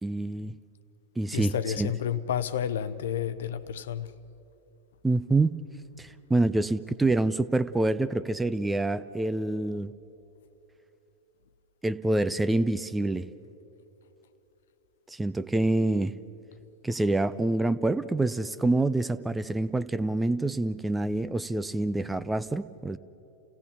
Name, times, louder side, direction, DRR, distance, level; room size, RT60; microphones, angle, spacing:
voice 1, 0.0-0.5 1.2-1.5 1.8-1.9 5.0-5.6 6.0-9.9 11.8-13.3 15.1-16.1 16.8-23.0, right 2 dB, 10° right, 0.5 m, -26 dB
voice 2, 1.3-4.1, left 9 dB, 60° left, 0.8 m, -30 dB
29.0 x 17.0 x 6.8 m
figure-of-eight pair, 90°, 0 cm